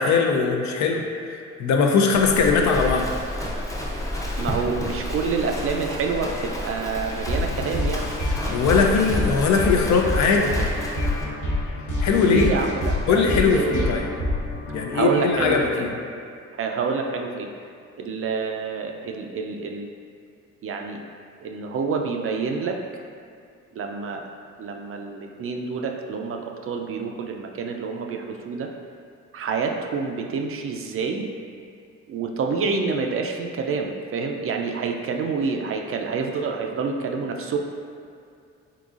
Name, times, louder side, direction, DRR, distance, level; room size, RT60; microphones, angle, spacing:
voice 1, 0.0-3.1 8.5-10.6 12.0-12.5 13.1-14.1 14.7-15.9, left 5 dB, 65° left, 2 dB, 0.5 m, -20 dB
Livestock farm animals working animals, 2.1-11.2, left 1 dB, 10° left, 0.5 m, -31 dB
voice 2, 4.4-8.1 12.2-13.2 13.5-13.9 14.9-15.9 16.6-17.5 18.0-19.9 20.6-21.0 21.4-22.8 23.7-24.2 24.6-28.7 29.3-31.3 32.1-37.6, right 5 dB, 45° right, 3 dB, 0.4 m, -27 dB
sound 1, 7.3-15.7, left 1 dB, 85° left, 1.0 m, -27 dB
3.8 x 3.7 x 2.4 m, 2.4 s
cardioid pair, 90°, 30 cm